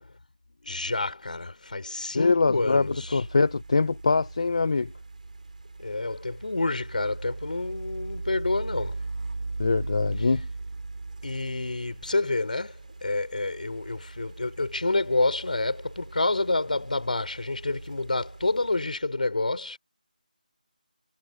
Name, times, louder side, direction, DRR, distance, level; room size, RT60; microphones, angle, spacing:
voice 1, 0.6-3.2 5.8-9.0 11.2-12.7 13.0-19.8, left 2 dB, 65° left, 4.3 m, -28 dB
voice 2, 2.1-4.9 9.6-10.5, left 4 dB, 45° left, 1.1 m, -23 dB
sound 1, 2.7-18.8, right 3 dB, 60° right, 5.2 m, -39 dB
figure-of-eight pair, 165°, 5 cm